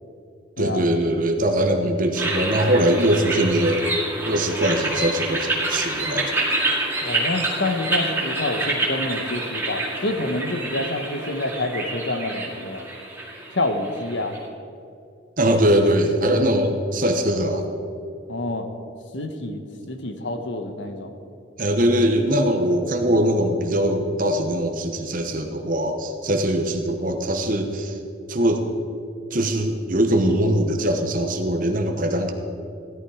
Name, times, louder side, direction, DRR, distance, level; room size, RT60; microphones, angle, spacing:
voice 1, 0.6-3.9 4.3-6.4 15.4-17.7 21.6-28.0 28.3-28.6 29.3-32.3, right 1 dB, 40° right, 4 dB, 1.1 m, -21 dB
sound 1, 2.2-14.4, right 2 dB, 10° right, 2.2 m, -27 dB
voice 2, 7.0-12.9 13.5-14.3 15.5-15.6 18.3-18.7 19.1-19.6 19.9-21.1, left 2 dB, 65° left, 6 dB, 1.3 m, -27 dB
16.5 x 12.0 x 4.9 m, 2.6 s
head